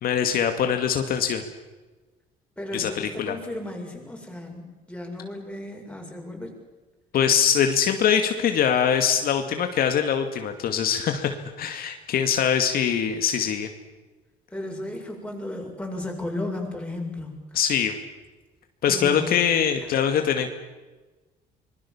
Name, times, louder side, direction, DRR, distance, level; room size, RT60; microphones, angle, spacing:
voice 1, 0.0-1.4 2.7-3.3 7.1-13.7 17.5-18.0 18.8-20.5, left 8 dB, 60° left, 6 dB, 2.2 m, -23 dB
voice 2, 2.6-6.6 14.5-17.4 18.9-19.4 20.0-20.2, left 1 dB, 5° left, 1 dB, 7.4 m, -34 dB
25.5 x 22.0 x 7.2 m, 1.2 s
cardioid pair, 110°, 17 cm